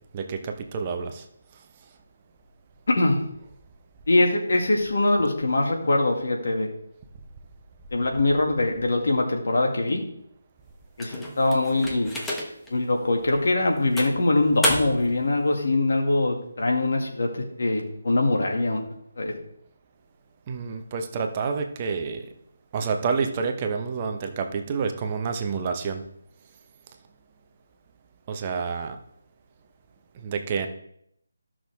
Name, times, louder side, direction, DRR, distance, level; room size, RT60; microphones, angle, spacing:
voice 1, 0.1-1.2 20.5-22.2 22.7-26.0 28.3-29.0 30.2-30.7, right 5 dB, 25° right, 5 dB, 0.9 m, -28 dB
voice 2, 4.1-6.7 7.9-10.0 11.0-12.1 12.7-18.8 19.2-19.3, left 2 dB, 65° left, 1 dB, 2.1 m, -23 dB
sound 1, 11.0-12.7 13.2-13.4 14.0-15.2, left 1 dB, 5° left, 1.1 m, -30 dB
14.0 x 6.2 x 3.5 m, 0.72 s
figure-of-eight pair, 160°, 0 cm